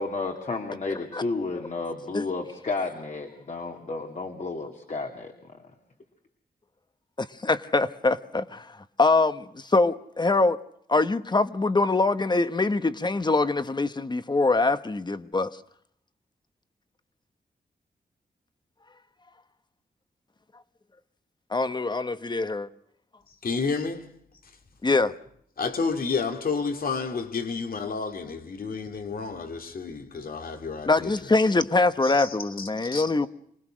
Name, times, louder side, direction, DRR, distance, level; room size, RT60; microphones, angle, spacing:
voice 1, 0.0-5.3, left 3 dB, 50° left, 2.6 m, -32 dB
voice 2, 7.2-10.6 10.9-15.6 21.5-22.7 24.8-25.2 30.9-33.3, left 3 dB, 30° left, 1.1 m, -24 dB
voice 3, 23.3-24.1 25.6-31.3 32.0-33.0, left 4 dB, 65° left, 2.7 m, -31 dB
26.0 x 20.0 x 6.3 m
wide cardioid pair, 90°, 16 cm